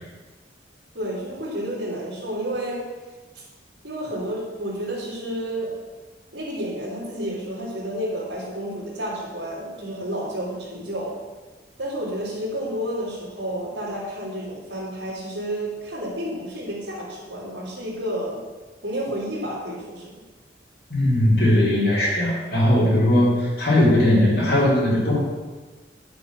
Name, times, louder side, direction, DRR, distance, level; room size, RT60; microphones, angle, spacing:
voice 1, 0.9-2.8 3.8-5.7 6.3-11.1 11.8-18.4 18.8-20.1, right 1 dB, 85° right, -10 dB, 3.1 m, -30 dB
voice 2, 20.9-25.2, left 1 dB, 60° left, -8 dB, 4.0 m, -19 dB
10.5 x 6.9 x 6.3 m, 1.3 s
head